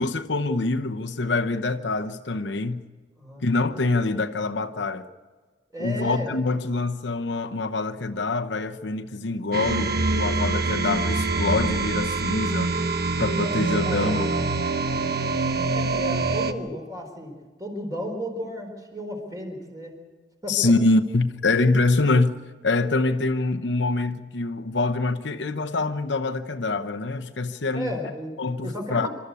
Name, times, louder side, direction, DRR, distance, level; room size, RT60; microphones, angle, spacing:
voice 1, 0.0-2.8 3.4-5.0 5.8-12.7 13.2-14.3 20.5-22.4 22.6-27.9 28.4-29.1, left 3 dB, 70° left, 0.9 m, -25 dB
voice 2, 5.7-6.4 13.8-14.2 15.7-17.3 17.6-20.0 20.4-20.7 27.7-28.4 28.6-29.1, equal, 20° right, 4.2 m, -33 dB
sound 1, 9.5-16.5, right 3 dB, 60° right, 1.1 m, -25 dB
27.0 x 13.0 x 8.3 m
head